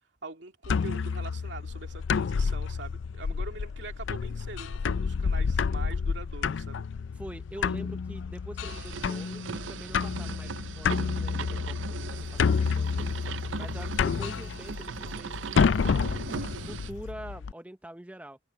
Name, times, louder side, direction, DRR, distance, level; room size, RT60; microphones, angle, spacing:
voice 1, 0.2-6.8, right 3 dB, 70° right, 2.7 m, -43 dB
sound 1, 0.6-17.5, left 5 dB, 80° left, 0.4 m, -29 dB
voice 2, 7.2-13.1 13.6-16.2 16.6-18.4, right 1 dB, 10° right, 0.7 m, -45 dB
sound 2, 8.6-16.9, right 6 dB, 85° right, 0.5 m, -39 dB
sound 3, 12.1-17.1, left 3 dB, 40° left, 3.7 m, -60 dB
head